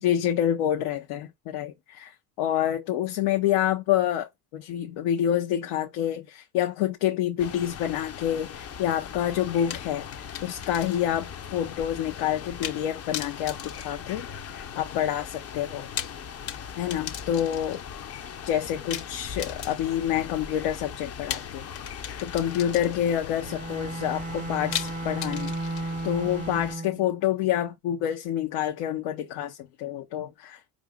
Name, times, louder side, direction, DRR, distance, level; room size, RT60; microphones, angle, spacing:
voice 1, 0.0-10.1 10.4-15.9 16.8-17.8 18.4-21.7 22.2-30.6, left 11 dB, 75° left, 0.8 m, -28 dB
sound 1, 7.4-26.7, left 7 dB, 30° left, 0.5 m, -40 dB
sound 2, 9.7-11.2 11.5-11.6 12.6-12.9 13.1-14.7 15.7-17.9 18.9-20.1 21.3-23.2 24.7-26.1, left 10 dB, 60° left, 1.1 m, -37 dB
Bowed string instrument, 23.4-27.2, right 2 dB, 20° right, 0.4 m, -34 dB
4.9 x 2.5 x 3.5 m
supercardioid pair, 85°, 49 cm